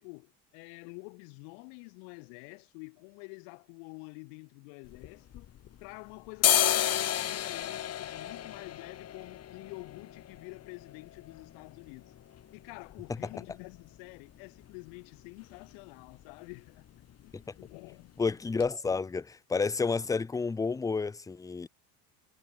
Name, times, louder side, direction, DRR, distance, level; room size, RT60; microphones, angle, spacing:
voice 1, 0.0-5.5 5.8-12.1 12.5-16.8 17.2-18.1, left 40 dB or more, 80° left, 5.6 m, -48 dB
sound 1, 4.8-5.9 6.3-14.0 14.3-14.4 14.6-15.2 15.5-15.7 16.0-16.2 16.5-17.2 17.6-17.7 18.2-18.3 18.6-18.7, left 11 dB, 35° left, 1.7 m, -32 dB
voice 2, 18.2-21.7, left 4 dB, 10° left, 0.5 m, -30 dB
cardioid pair, 125°, 42 cm